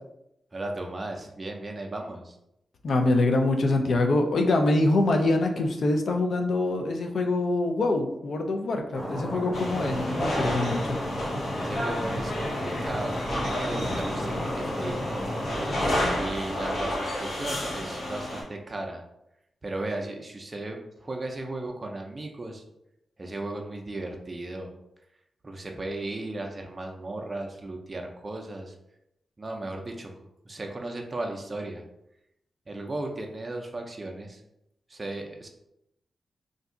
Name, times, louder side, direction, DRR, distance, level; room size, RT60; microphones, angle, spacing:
voice 1, 0.5-2.4 11.6-15.3 16.2-19.0 19.6-22.6 23.2-24.7 25.4-28.7 29.4-30.1 30.5-31.8 32.7-34.4 34.9-35.5, right 2 dB, 30° right, 2 dB, 0.4 m, -36 dB
voice 2, 2.8-11.0, left 2 dB, 60° left, 4 dB, 0.4 m, -24 dB
Stream, 8.9-16.0, equal, 15° left, 0.9 m, -33 dB
sound 1, 9.5-18.4, left 1 dB, 85° left, 1.0 m, -31 dB
2.5 x 2.3 x 3.7 m, 0.82 s
wide cardioid pair, 100°, 0 cm